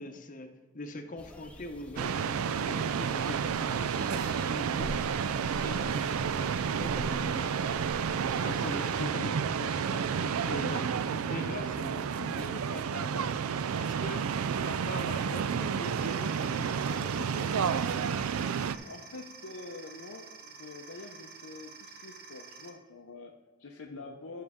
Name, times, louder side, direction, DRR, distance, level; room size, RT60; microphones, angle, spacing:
voice 1, 0.0-5.0 5.4-13.4 13.7-14.3 14.6-17.7 23.9-24.0, left 2 dB, 35° left, 5 dB, 0.8 m, -42 dB
sound 1, 1.2-9.1, left 1 dB, 5° left, 0.6 m, -46 dB
sound 2, 2.0-18.8, right 7 dB, 80° right, 0.4 m, -31 dB
sound 3, 15.8-22.7, right 4 dB, 45° right, 1.1 m, -49 dB
voice 2, 18.8-24.4, left 3 dB, 85° left, 0 dB, 0.7 m, -46 dB
11.5 x 6.4 x 3.6 m, 1.3 s
head